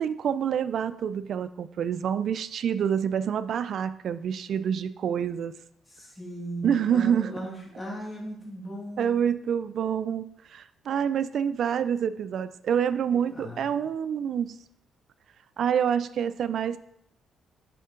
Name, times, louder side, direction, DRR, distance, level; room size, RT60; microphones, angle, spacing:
voice 1, 0.0-5.5 6.6-7.4 9.0-14.6 15.6-16.8, right 8 dB, 65° right, 13 dB, 0.3 m, -27 dB
voice 2, 5.9-9.2 13.1-13.9, right 1 dB, 20° left, -2 dB, 2.2 m, -38 dB
6.7 x 4.6 x 3.7 m, 0.74 s
cardioid pair, 90°, 0 cm